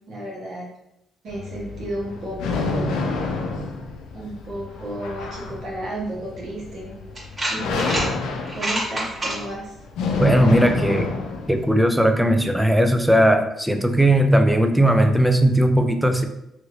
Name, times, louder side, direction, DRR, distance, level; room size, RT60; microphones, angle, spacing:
voice 1, 0.1-0.7 1.2-3.0 4.1-6.9 7.5-8.0 8.5-9.7, right 1 dB, 65° right, -6 dB, 1.3 m, -32 dB
sound 1, 1.3-11.7, left 3 dB, 90° left, 0.4 m, -29 dB
sound 2, 6.4-6.5 7.2-8.1 8.4-9.4, right 1 dB, 25° right, 1.2 m, -26 dB
voice 2, 10.2-11.1 11.5-16.3, right 1 dB, 5° right, 6 dB, 0.4 m, -18 dB
2.9 x 2.5 x 3.1 m, 0.85 s
cardioid pair, 90°, 0 cm